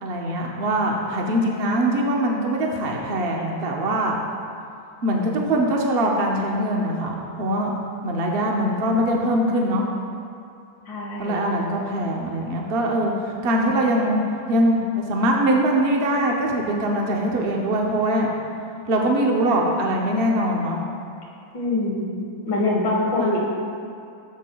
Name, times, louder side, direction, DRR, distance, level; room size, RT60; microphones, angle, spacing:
voice 1, 0.0-4.2 5.0-7.7 8.0-9.8 11.2-14.2 14.5-18.3 18.9-20.8 23.2-23.4, right 1 dB, 65° right, -1 dB, 0.6 m, -22 dB
voice 2, 10.9-11.5 21.5-22.1 22.5-23.4, left 2 dB, 70° left, -5 dB, 2.3 m, -24 dB
12.0 x 8.4 x 2.3 m, 2.5 s
omnidirectional pair, 2.1 m